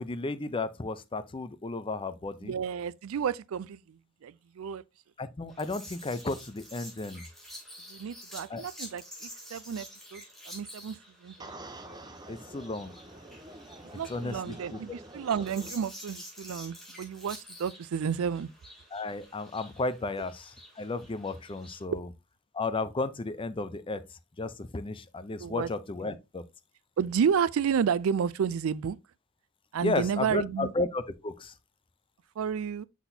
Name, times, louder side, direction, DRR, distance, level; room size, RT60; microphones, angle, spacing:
voice 1, 0.0-2.5 5.2-7.2 8.5-8.6 12.3-12.9 14.1-14.8 18.9-22.1 22.5-24.0 24.4-26.4 29.8-31.5, left 3 dB, 25° left, 0.5 m, -33 dB
voice 2, 2.4-4.8 7.9-11.5 14.0-18.5 21.9-22.0 25.4-25.7 27.0-29.0 29.7-30.7 32.4-32.8, right 7 dB, 80° right, 0.4 m, -31 dB
sound 1, 5.5-21.8, equal, ahead, 2.7 m, -49 dB
sound 2, 11.4-15.7, right 2 dB, 20° right, 0.7 m, -47 dB
6.0 x 6.0 x 2.7 m
head